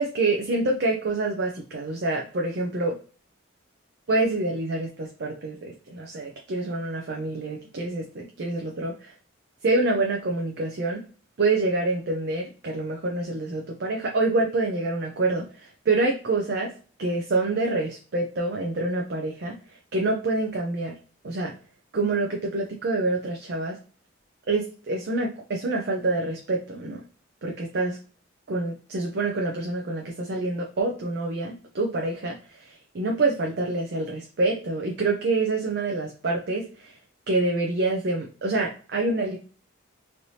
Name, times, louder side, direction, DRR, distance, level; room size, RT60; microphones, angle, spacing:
voice 1, 0.0-3.0 4.1-9.1 9.6-11.0 11.4-16.7 17.0-19.5 19.9-20.9 21.2-21.5 21.9-23.8 24.5-27.0 27.4-28.0 28.5-37.0 37.3-39.4, right 2 dB, 55° right, 1 dB, 0.5 m, -26 dB
3.2 x 2.7 x 2.8 m, 0.39 s
head